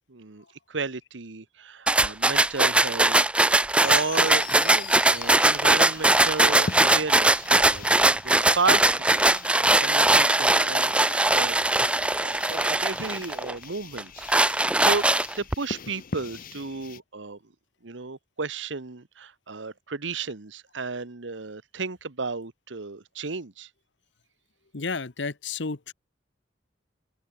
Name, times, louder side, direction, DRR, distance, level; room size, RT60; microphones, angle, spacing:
voice 1, 0.0-3.2 3.6-7.9 8.2-15.1 15.4-17.4 17.8-23.7, right 4 dB, 80° right, 1.2 m, -33 dB
sound 1, 1.9-13.5 14.0-15.5, right 2 dB, 5° right, 0.4 m, -21 dB
sound 2, 3.8-17.0, left 5 dB, 50° left, 0.7 m, -42 dB
voice 2, 24.7-25.9, left 4 dB, 70° left, 1.1 m, -32 dB
head